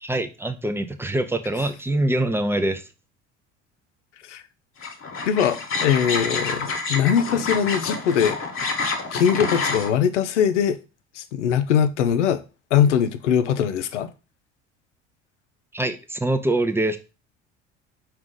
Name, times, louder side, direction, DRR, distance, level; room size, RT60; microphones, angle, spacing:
voice 1, 0.0-2.9 15.7-17.0, right 1 dB, 5° right, 0.4 m, -24 dB
sound 1, 4.8-9.9, left 4 dB, 35° left, 1.0 m, -28 dB
voice 2, 5.2-8.4 9.1-10.8 11.2-12.4 12.7-14.1, left 8 dB, 85° left, 0.5 m, -21 dB
4.9 x 2.4 x 3.7 m
hypercardioid pair, 65°, 35 cm